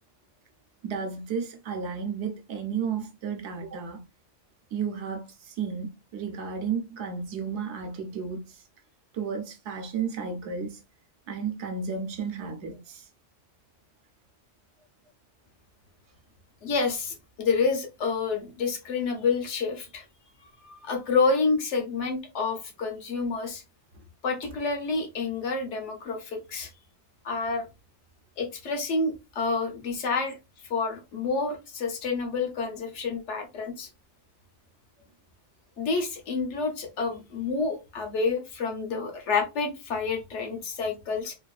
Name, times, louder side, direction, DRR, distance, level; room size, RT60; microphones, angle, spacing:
voice 1, 0.8-4.0 4.7-8.6 9.1-10.8 11.3-13.1 24.0-24.1, right 6 dB, 80° right, 0.9 m, -33 dB
voice 2, 16.6-20.0 20.6-23.6 24.2-26.7 27.2-27.7 28.4-30.4 30.7-33.9 35.8-41.3, left 4 dB, 85° left, 1.1 m, -28 dB
2.9 x 2.3 x 2.3 m
omnidirectional pair, 1.2 m